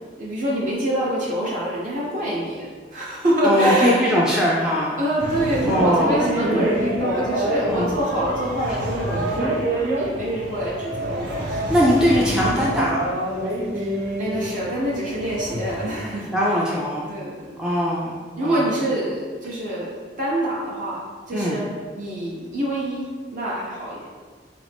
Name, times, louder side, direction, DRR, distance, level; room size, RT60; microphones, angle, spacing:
voice 1, 0.2-4.1 5.0-11.8 13.7-13.9 14.2-16.3 17.0-17.6 18.4-21.0 21.3-21.6 21.9-24.0, right 1 dB, 45° right, -6 dB, 0.6 m, -26 dB
voice 2, 3.4-5.0 5.6-6.7 7.7-7.9 8.7-8.8 11.7-13.1 16.3-17.0 17.6-18.7 21.3-21.6, equal, 5° right, -5 dB, 0.3 m, -21 dB
sound 1, 5.2-15.9, right 1 dB, 70° right, 1.0 m, -27 dB
4.1 x 2.5 x 3.3 m, 1.5 s
head